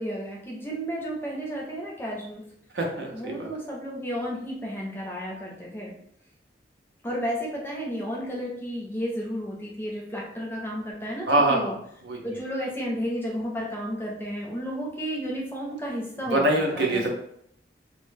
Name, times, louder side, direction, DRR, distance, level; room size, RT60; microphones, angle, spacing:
voice 1, 0.0-2.4 3.1-5.9 7.0-11.7 12.2-17.1, equal, 10° left, -3 dB, 0.5 m, -32 dB
voice 2, 2.7-3.5 11.3-11.7 12.1-12.3 16.2-17.1, right 1 dB, 80° right, 1 dB, 0.5 m, -24 dB
2.1 x 2.0 x 3.2 m, 0.70 s
head